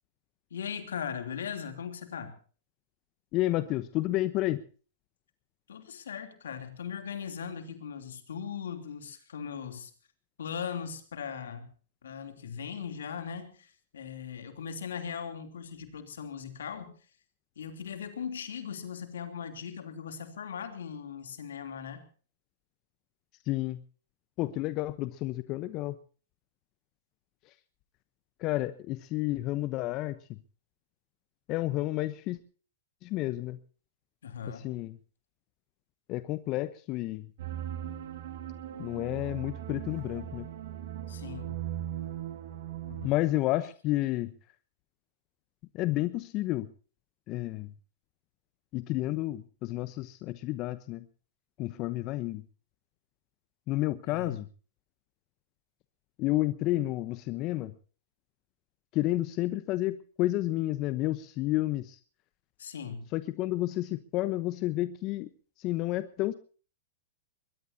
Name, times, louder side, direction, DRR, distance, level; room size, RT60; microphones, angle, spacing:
voice 1, 0.5-2.4 5.7-9.9 10.4-11.7 12.0-16.9 17.6-22.0 34.2-34.7 41.1-41.6 42.8-43.2 54.1-54.4 62.6-63.1, left 7 dB, 80° left, 7 dB, 3.1 m, -39 dB
voice 2, 3.3-4.6 23.5-23.8 24.4-25.9 28.4-30.4 31.5-32.4 33.0-33.6 34.5-34.9 36.1-37.3 38.8-40.5 43.0-44.3 45.7-46.7 47.3-47.7 48.7-51.0 51.6-52.4 53.7-54.5 56.2-57.7 58.9-62.0 63.1-65.3 65.6-66.3, left 17 dB, 40° left, 13 dB, 1.0 m, -30 dB
sound 1, 37.4-43.1, right 11 dB, 65° right, 2.8 m, -38 dB
21.5 x 21.5 x 2.8 m, 0.39 s
hypercardioid pair, 115°, 0 cm